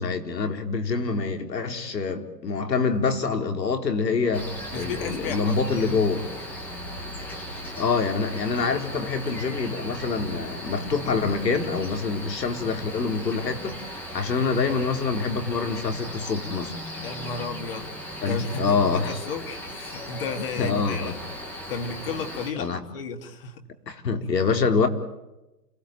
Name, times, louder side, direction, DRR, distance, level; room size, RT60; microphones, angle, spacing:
voice 1, 0.0-6.3 7.8-16.7 18.2-19.2 20.6-21.1 22.6-22.8 23.9-24.9, left 4 dB, 85° left, 4.2 m, -26 dB
Cricket, 4.3-22.5, equal, 5° left, 0.9 m, -37 dB
voice 2, 4.7-5.9 14.7-15.0 17.0-17.9 18.3-21.2 21.7-23.6, left 5 dB, 35° left, 2.3 m, -34 dB
30.0 x 18.0 x 9.0 m
hypercardioid pair, 165°, 49 cm